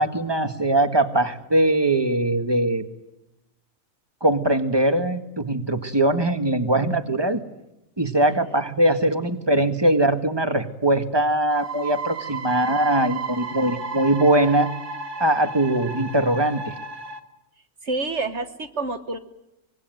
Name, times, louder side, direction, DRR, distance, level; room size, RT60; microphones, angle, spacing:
voice 1, 0.0-2.8 4.2-7.4 8.0-14.7 15.2-16.7, right 1 dB, 15° right, 8 dB, 1.7 m, -21 dB
sound 1, 11.5-17.2, right 4 dB, 85° right, 2.4 m, -33 dB
voice 2, 17.8-19.2, right 3 dB, 50° right, 9 dB, 1.6 m, -28 dB
24.5 x 22.0 x 9.3 m, 0.91 s
omnidirectional pair, 1.6 m